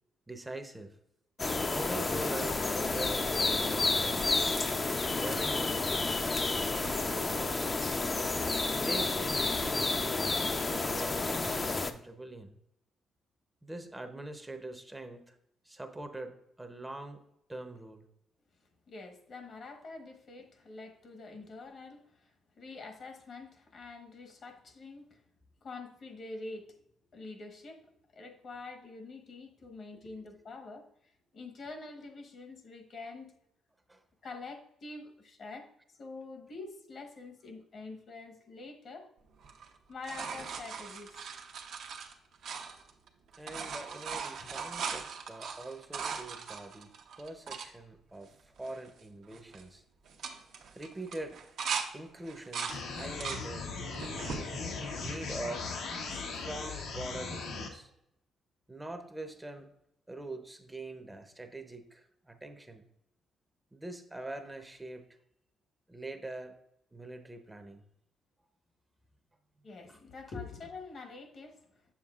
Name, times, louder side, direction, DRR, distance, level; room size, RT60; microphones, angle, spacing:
voice 1, 0.3-1.0 1.7-4.5 5.1-7.9 8.8-12.6 13.6-15.4 15.6-17.2 17.5-18.1 29.9-30.2 33.9-34.0 43.4-49.8 50.7-51.4 51.9-53.7 54.2-54.5 55.0-55.7 56.1-57.9 58.7-59.7 60.1-62.9 63.7-65.1 65.9-66.5 66.9-67.8 69.9-70.0, right 2 dB, 15° right, 0.7 m, -43 dB
sound 1, 1.4-11.9, left 3 dB, 30° left, 0.5 m, -30 dB
voice 2, 18.9-25.2 25.6-26.8 27.1-33.4 34.2-35.7 36.0-39.1 39.9-41.2 44.4-44.5 69.6-71.6, left 3 dB, 55° left, 1.1 m, -46 dB
sound 2, 39.4-43.1 43.3-47.7 48.3-48.4 48.6-49.0 49.3-49.6 50.0-51.9 52.2-53.4 53.9-54.4 55.1-55.8 57.4-57.5, right 6 dB, 70° right, 0.8 m, -39 dB
sound 3, 52.7-57.7, left 4 dB, 85° left, 1.1 m, -38 dB
7.3 x 7.1 x 2.4 m
cardioid pair, 90°, 0 cm